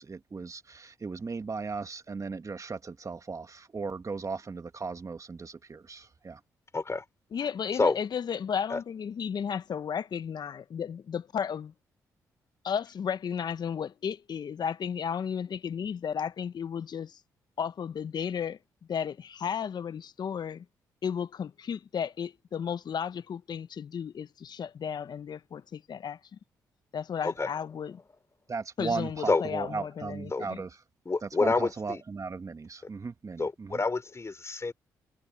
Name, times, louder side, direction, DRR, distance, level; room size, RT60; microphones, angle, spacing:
voice 1, 0.0-6.4 28.5-30.8 31.2-33.8, right 4 dB, 40° right, 2.3 m, -37 dB
voice 2, 6.7-7.0 7.8-8.0 8.7-8.8 27.2-27.5 29.3-29.4 30.3-30.4 31.1-32.0 33.4-34.7, left 3 dB, 35° left, 3.6 m, -28 dB
voice 3, 7.3-11.7 12.6-17.2 17.6-18.6 18.9-20.6 21.0-26.2 26.9-28.0 28.8-30.6, left 7 dB, 55° left, 1.0 m, -34 dB
hypercardioid pair, 45°, 9 cm